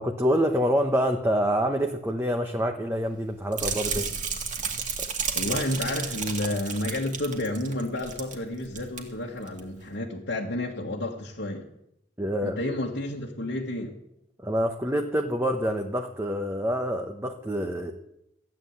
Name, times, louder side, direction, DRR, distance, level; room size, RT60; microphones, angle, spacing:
voice 1, 0.0-4.1 12.2-12.6 14.4-17.9, equal, 15° right, 3 dB, 1.0 m, -26 dB
sound 1, 3.5-8.4 8.6-9.0 9.5-9.6, right 6 dB, 45° right, 2.2 m, -32 dB
voice 2, 5.3-11.7 12.4-13.9, left 1 dB, 75° left, -3 dB, 1.7 m, -31 dB
15.0 x 9.7 x 8.2 m, 0.81 s
head